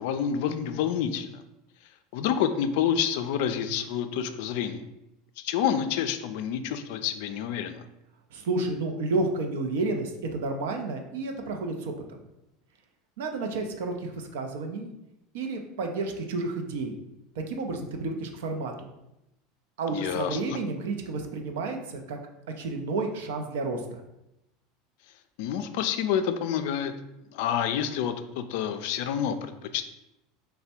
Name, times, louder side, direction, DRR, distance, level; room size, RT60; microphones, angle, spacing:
voice 1, 0.0-1.4 2.1-4.8 5.4-7.8 19.9-20.6 25.4-26.9 27.3-29.8, left 8 dB, 70° left, 9 dB, 0.3 m, -28 dB
voice 2, 8.3-11.9 13.2-14.9 15.3-16.9 17.4-18.7 19.8-22.2 22.6-24.0, right 3 dB, 80° right, 4 dB, 0.5 m, -31 dB
3.3 x 2.2 x 4.1 m, 0.90 s
hypercardioid pair, 95°, 0 cm